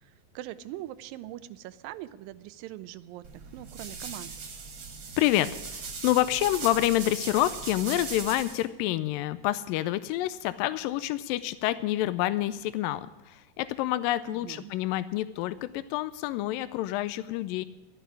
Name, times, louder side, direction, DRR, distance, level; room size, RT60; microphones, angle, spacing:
voice 1, 0.0-4.3 14.3-14.7, right 14 dB, 85° right, 15 dB, 2.3 m, -42 dB
sound 1, 3.2-8.6, right 5 dB, 45° right, 2.1 m, -39 dB
voice 2, 5.2-17.7, left 14 dB, 80° left, 13 dB, 2.2 m, -28 dB
12.5 x 8.2 x 9.7 m, 1.0 s
omnidirectional pair, 4.0 m